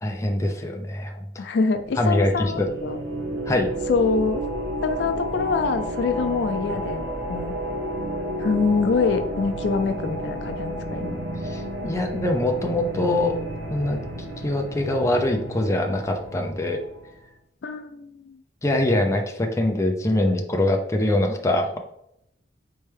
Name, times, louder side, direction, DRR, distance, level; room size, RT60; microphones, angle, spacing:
voice 1, 0.0-1.5 2.0-2.7 3.5-3.7 11.4-13.4 13.7-14.0 14.4-16.8 18.6-21.8, left 1 dB, 15° left, 3 dB, 0.5 m, -23 dB
voice 2, 1.4-3.0 3.9-4.4 4.8-7.6 8.4-11.2 17.6-18.4, left 4 dB, 70° left, 8 dB, 0.4 m, -25 dB
sound 1, 1.7-17.1, right 1 dB, 75° right, 1.1 m, -31 dB
4.3 x 3.3 x 3.3 m, 0.78 s
head